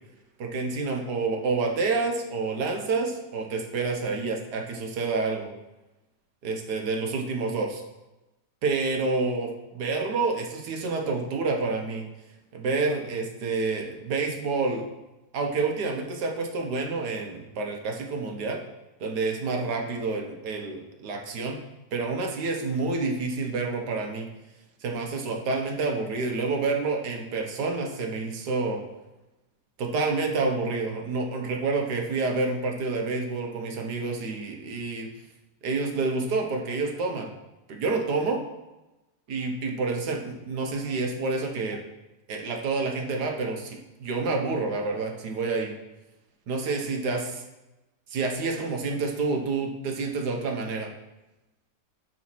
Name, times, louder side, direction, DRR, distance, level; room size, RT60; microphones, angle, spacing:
voice 1, 0.4-5.5 6.4-7.8 8.6-12.0 12.5-14.9 15.3-18.6 19.0-21.6 21.9-24.3 24.8-28.8 29.8-35.1 35.6-37.3 37.7-38.4 39.3-41.8 42.3-45.7 46.5-47.4 48.1-50.9, right 3 dB, 70° right, 2 dB, 1.6 m, -28 dB
9.1 x 4.1 x 6.1 m, 1.0 s
omnidirectional pair, 1.9 m